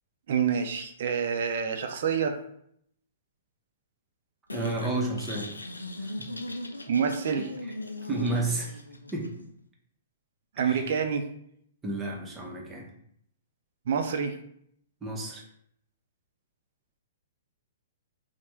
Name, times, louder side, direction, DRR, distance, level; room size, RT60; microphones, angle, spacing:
voice 1, 0.3-2.4 6.9-7.5 10.6-11.2 13.9-14.3, right 7 dB, 55° right, 6 dB, 0.3 m, -27 dB
sound 1, 4.5-9.5, left 1 dB, 85° left, 0.3 m, -39 dB
voice 2, 4.5-5.5 7.4-7.5 8.1-8.7 9.1-9.3 10.6-10.9 11.8-12.9 15.0-15.4, right 2 dB, 15° right, -1 dB, 0.7 m, -31 dB
3.2 x 2.0 x 3.0 m, 0.69 s
figure-of-eight pair, 115°, 0 cm